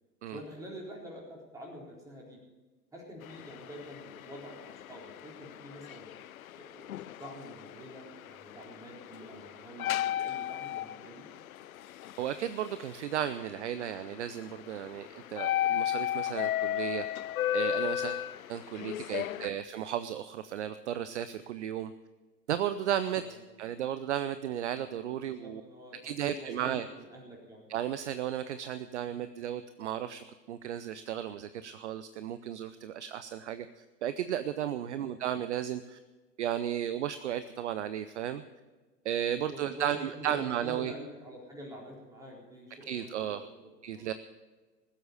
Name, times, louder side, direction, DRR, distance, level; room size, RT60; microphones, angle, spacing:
voice 1, 0.3-2.4 2.9-6.1 6.6-11.2 14.8-15.1 18.6-19.3 23.2-23.4 25.2-27.6 34.7-35.5 39.4-44.1, equal, 5° right, -3 dB, 4.1 m, -47 dB
sound 1, 3.2-19.5, left 12 dB, 55° left, 0.6 m, -36 dB
voice 2, 12.2-17.1 17.5-18.2 18.5-21.9 22.5-25.6 26.0-26.9 27.7-33.7 34.0-36.0 36.4-38.4 39.0-40.9 42.9-43.4 43.8-44.1, right 10 dB, 45° right, 13 dB, 0.6 m, -34 dB
20.0 x 7.8 x 6.8 m, 1.3 s
figure-of-eight pair, 105°, 50 cm